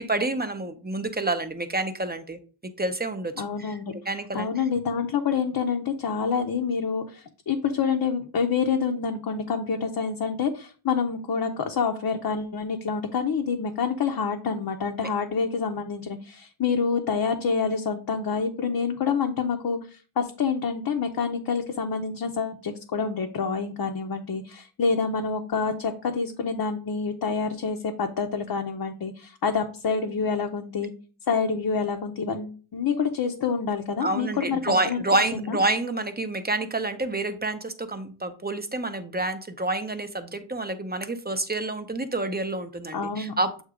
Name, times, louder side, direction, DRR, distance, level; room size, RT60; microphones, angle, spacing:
voice 1, 0.0-2.4 2.8-3.3 3.6-3.8 4.1-4.5 34.0-43.6, right 2 dB, 20° right, 8 dB, 0.6 m, -28 dB
voice 2, 3.4-3.9 4.3-30.9 31.3-35.6 42.9-43.3, left 5 dB, 50° left, 3 dB, 0.7 m, -27 dB
8.0 x 2.8 x 4.9 m, 0.38 s
wide cardioid pair, 155°, 48 cm